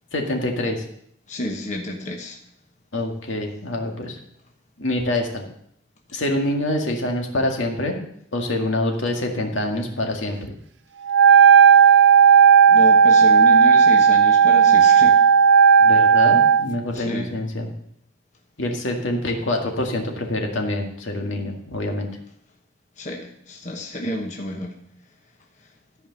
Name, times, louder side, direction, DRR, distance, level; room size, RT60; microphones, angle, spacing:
voice 1, 0.1-0.8 2.9-4.2 4.8-5.4 6.1-8.0 8.3-10.4 15.8-17.7 18.6-22.1, left 1 dB, 80° left, 2 dB, 2.0 m, -25 dB
voice 2, 1.3-2.4 12.7-15.2 16.9-17.3 23.0-24.8, left 1 dB, 40° left, 1 dB, 1.2 m, -30 dB
Wind instrument woodwind instrument, 11.1-16.7, right 7 dB, 65° right, 0.5 m, -13 dB
14.0 x 5.2 x 6.8 m, 0.69 s
head